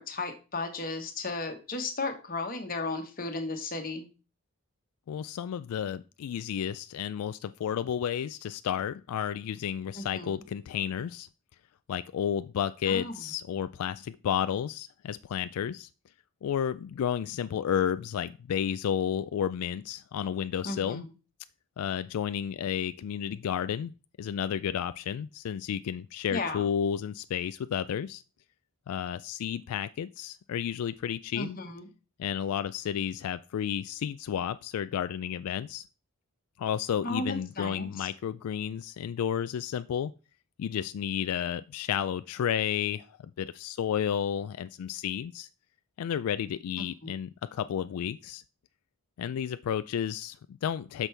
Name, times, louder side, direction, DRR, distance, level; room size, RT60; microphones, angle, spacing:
voice 1, 0.0-4.1 9.9-10.3 12.9-13.2 20.6-21.0 26.3-26.6 31.3-31.8 37.0-38.1 46.8-47.1, left 2 dB, 40° left, 1.2 m, -35 dB
voice 2, 5.1-11.3 11.9-15.9 16.4-21.0 21.8-23.9 24.2-28.2 28.9-31.6 32.2-35.8 36.6-40.1 40.6-43.1 43.4-45.5 46.0-48.4 49.2-51.1, left 8 dB, 85° left, 0.3 m, -32 dB
8.2 x 6.1 x 3.3 m
head